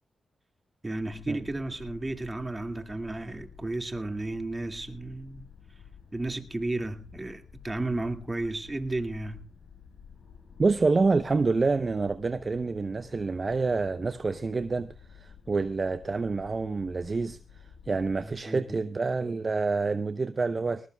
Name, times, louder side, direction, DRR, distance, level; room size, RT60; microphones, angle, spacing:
voice 1, 0.8-5.5 6.1-9.4 18.2-18.8, right 2 dB, 25° right, 2.1 m, -33 dB
sound 1, 0.9-18.4, left 7 dB, 70° left, 7.6 m, -51 dB
voice 2, 10.6-20.9, right 4 dB, 40° right, 0.7 m, -27 dB
20.0 x 19.0 x 2.3 m
supercardioid pair, 45°, 0 cm